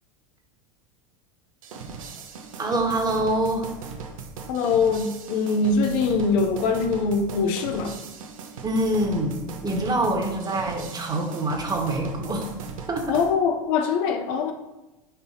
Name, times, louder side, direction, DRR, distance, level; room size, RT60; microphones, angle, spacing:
sound 1, 1.6-13.3, right 5 dB, 70° right, 1.1 m, -39 dB
voice 1, 2.6-3.7 8.6-12.5 12.9-13.2, right 1 dB, 20° right, 2 dB, 1.7 m, -25 dB
voice 2, 4.5-8.0 13.1-14.5, left 4 dB, 55° left, 5 dB, 0.8 m, -23 dB
9.3 x 5.5 x 2.9 m, 1.0 s
hypercardioid pair, 85°, 18 cm